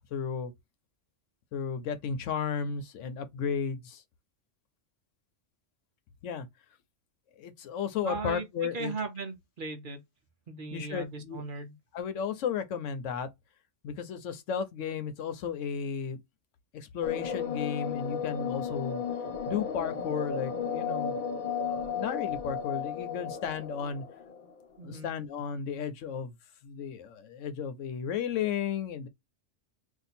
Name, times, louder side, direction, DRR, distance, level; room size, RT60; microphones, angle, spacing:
voice 1, 0.1-0.5 1.5-4.0 6.2-6.5 7.4-8.9 10.7-11.4 11.9-13.3 13.8-16.2 16.7-19.0 19.5-21.2 21.6-24.0 24.8-26.4 26.6-29.1, left 7 dB, 90° left, 1.0 m, -34 dB
voice 2, 8.0-10.0 10.5-11.8 24.8-25.1, right 3 dB, 50° right, 0.8 m, -37 dB
sound 1, 17.0-24.6, left 6 dB, 55° left, 0.6 m, -34 dB
2.7 x 2.4 x 4.1 m
omnidirectional pair, 1.2 m